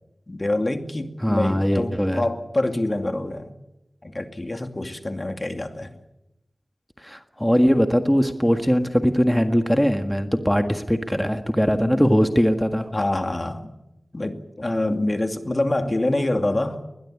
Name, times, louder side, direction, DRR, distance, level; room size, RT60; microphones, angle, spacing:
voice 1, 0.3-3.5 4.0-5.9 11.8-12.1 12.9-13.7 14.1-16.8, left 1 dB, 40° left, 2.5 m, -26 dB
voice 2, 1.2-2.2 7.0-12.9, equal, 5° left, 1.7 m, -20 dB
21.0 x 21.0 x 10.0 m
wide cardioid pair, 60°, 0 cm